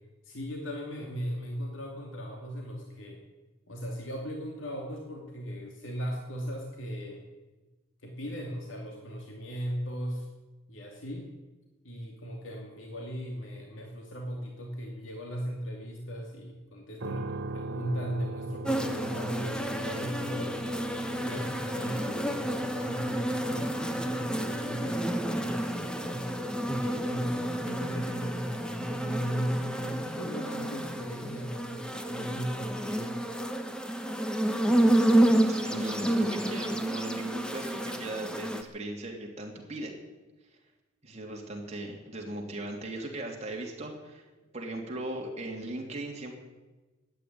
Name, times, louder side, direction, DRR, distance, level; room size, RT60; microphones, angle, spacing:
voice 1, 0.2-3.2 3.7-7.2 8.0-10.3 10.7-11.3 11.8-20.6 21.2-26.3 26.7-33.2, equal, 85° left, 1 dB, 2.5 m, -37 dB
sound 1, 17.0-31.0, right 2 dB, 75° right, 0.8 m, -43 dB
sound 2, 18.7-38.6, right 1 dB, 5° left, 1.1 m, -30 dB
voice 2, 35.4-39.9 41.0-44.2 44.5-46.3, right 2 dB, 35° right, 0 dB, 3.2 m, -38 dB
14.0 x 10.5 x 9.5 m, 1.2 s
head